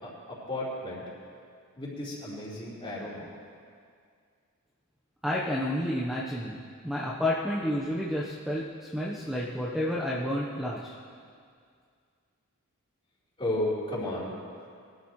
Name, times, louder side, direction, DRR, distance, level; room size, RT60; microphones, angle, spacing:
voice 1, 0.0-1.0 1.8-3.3 13.4-14.3, left 1 dB, 25° left, -7 dB, 4.0 m, -33 dB
voice 2, 5.2-10.9, left 1 dB, ahead, -6 dB, 1.0 m, -30 dB
23.0 x 13.0 x 3.2 m, 2.2 s
head